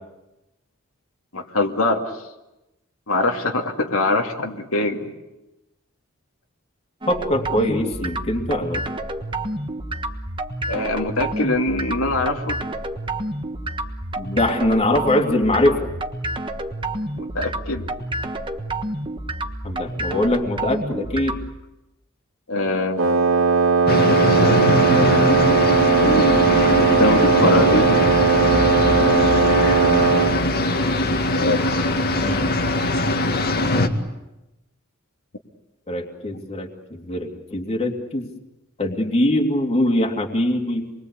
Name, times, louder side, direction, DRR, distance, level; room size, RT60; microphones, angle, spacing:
voice 1, 1.3-2.0 3.1-5.1 10.7-12.6 17.2-17.8 22.5-23.1 25.7-26.2 26.8-28.1 31.3-31.6, left 2 dB, 85° left, 2 dB, 2.6 m, -23 dB
sound 1, 7.0-21.5, right 1 dB, 25° right, 1.4 m, -29 dB
voice 2, 7.1-8.8 14.2-15.9 19.6-21.4 32.2-32.5 35.9-38.3 38.8-40.9, left 1 dB, 30° left, 2 dB, 2.8 m, -22 dB
Wind instrument woodwind instrument, 23.0-30.4, right 5 dB, 75° right, 2.1 m, -18 dB
sound 2, 23.9-33.9, left 1 dB, 50° left, 2.1 m, -21 dB
28.0 x 22.0 x 8.4 m, 0.96 s
head